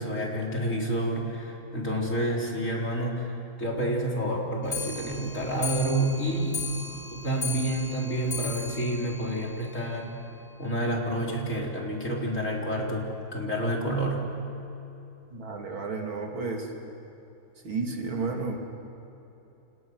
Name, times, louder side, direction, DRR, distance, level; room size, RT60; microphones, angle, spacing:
voice 1, 0.0-3.3 3.6-6.6 7.1-10.2 10.6-14.2, right 1 dB, 35° left, -2 dB, 4.2 m, -29 dB
Clock, 4.6-10.1 10.5-10.6 10.8-10.9 11.2-11.3 11.6-11.7 12.4-12.5 13.2-13.3 14.0-14.1, left 3 dB, 55° left, 4.6 m, -37 dB
voice 2, 15.3-16.7 17.6-18.6, right 4 dB, 70° right, 1 dB, 3.4 m, -32 dB
29.5 x 28.5 x 6.3 m, 3.0 s
omnidirectional pair, 2.3 m